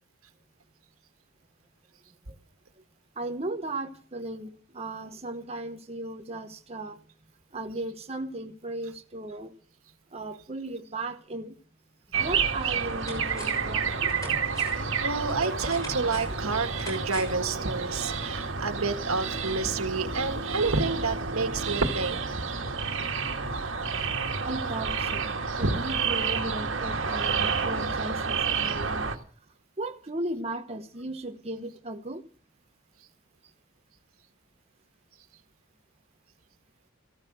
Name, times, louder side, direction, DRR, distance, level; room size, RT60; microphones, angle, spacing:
voice 1, 3.2-7.0 7.5-9.5 10.1-11.5 12.2-14.1 15.4-15.7 16.4-16.6 24.4-29.1 29.8-32.2, right 2 dB, 30° right, 1.0 m, -36 dB
sound 1, 12.1-12.2 12.6-13.7 14.1-17.5 17.8-17.9, equal, 15° left, 6.3 m, -42 dB
sound 2, 12.1-29.1, right 5 dB, 60° right, 1.8 m, -30 dB
voice 2, 15.0-22.2 25.6-25.8, right 3 dB, 85° right, 1.8 m, -29 dB
15.5 x 14.5 x 6.2 m
head